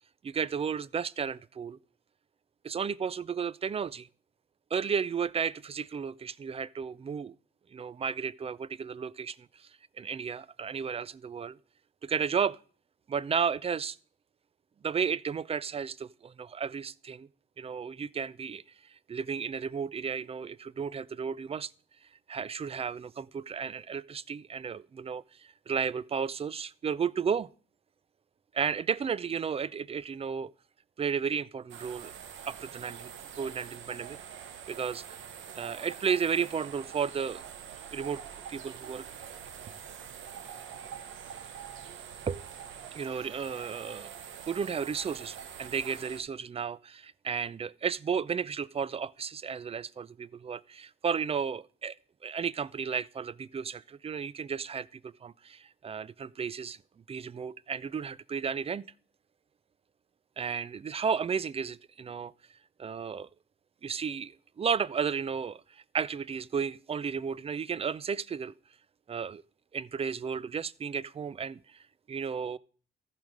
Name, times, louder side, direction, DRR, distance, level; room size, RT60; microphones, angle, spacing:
voice 1, 0.2-1.8 2.6-4.1 4.7-7.4 7.7-9.7 10.0-11.6 12.0-12.6 13.1-14.0 14.8-17.3 17.6-21.7 22.3-27.5 28.5-30.5 31.0-32.1 32.4-34.2 34.7-35.0 35.6-37.4 37.9-38.2 38.5-39.0 42.3-42.4 42.9-44.1 44.5-52.0 52.2-56.8 57.1-58.8 60.4-62.3 62.8-63.3 63.8-68.5 69.1-69.4 69.7-72.6, right 6 dB, 30° right, 0.4 m, -33 dB
sound 1, 31.7-46.2, right 8 dB, 80° right, 1.1 m, -45 dB
14.0 x 5.0 x 5.2 m
cardioid pair, 90°, 20 cm